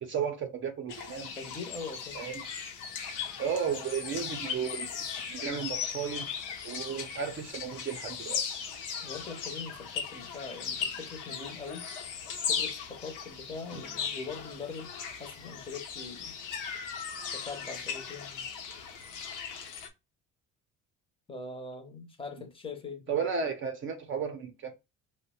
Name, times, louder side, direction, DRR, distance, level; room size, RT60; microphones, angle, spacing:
voice 1, 0.0-1.3 2.1-2.4 3.4-4.9 5.3-6.3 6.6-8.4 13.7-13.8 23.1-24.7, right 6 dB, 40° right, 0.5 m, -34 dB
sound 1, 0.9-19.9, left 6 dB, 70° left, 0.8 m, -38 dB
voice 2, 1.4-2.2 9.0-11.9 12.5-14.9 15.2-16.4 17.3-18.5 21.3-23.3, left 4 dB, 15° left, 0.7 m, -42 dB
3.0 x 2.1 x 4.1 m
cardioid pair, 140°, 32 cm